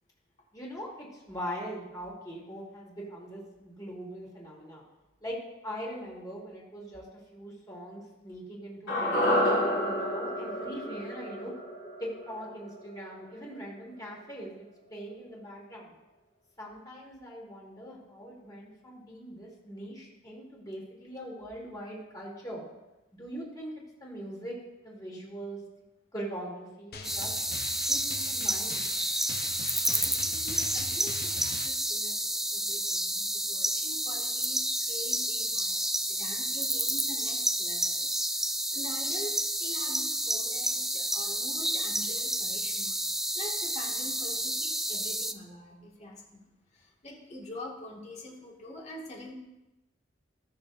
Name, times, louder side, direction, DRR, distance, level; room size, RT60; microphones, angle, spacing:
voice 1, 0.5-4.8 5.2-5.4 5.6-7.1 7.3-11.5 12.0-15.9 16.6-22.6 23.1-23.7 24.0-24.5 24.8-25.6 26.1-27.3 27.8-28.8, equal, 20° left, -4 dB, 3.2 m, -41 dB
sound 1, 8.9-13.2 13.5-13.6, equal, 70° left, 2.5 m, -29 dB
Drum, 26.9-31.7, left 3 dB, 55° left, 0.9 m, -42 dB
sound 2, 27.0-45.3, right 1 dB, ahead, 0.3 m, -30 dB
voice 2, 29.8-38.1 38.3-43.0 43.4-46.5 46.7-49.3, left 1 dB, 35° left, -2 dB, 2.2 m, -45 dB
19.5 x 6.6 x 2.7 m, 1.0 s
head